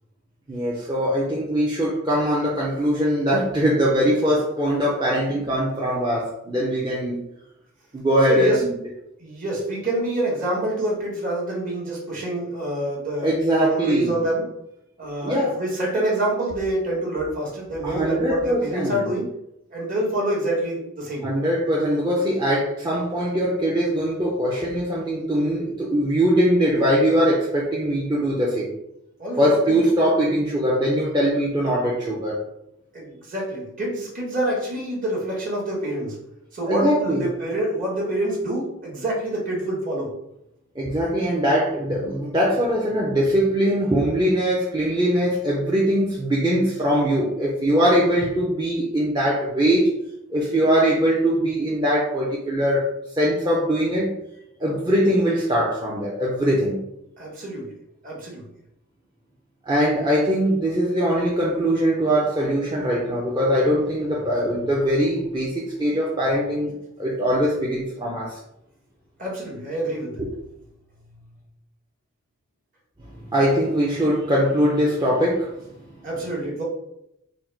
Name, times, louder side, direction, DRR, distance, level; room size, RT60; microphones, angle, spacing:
voice 1, 0.5-7.2 7.9-8.7 13.2-14.2 15.2-15.6 17.8-19.1 21.2-28.7 29.4-32.4 36.7-37.3 40.8-49.9 50.3-54.1 54.6-56.8 59.7-68.4 70.2-70.3 73.1-75.7, equal, 20° right, -5 dB, 0.5 m, -21 dB
voice 2, 8.3-8.6 9.2-13.3 13.6-14.4 15.0-19.3 19.7-21.3 29.2-29.8 32.9-36.2 36.5-40.1 57.2-57.8 58.0-58.4 69.2-70.2 76.0-76.6, right 1 dB, 40° right, -3 dB, 1.3 m, -26 dB
4.0 x 2.0 x 4.4 m, 0.81 s
head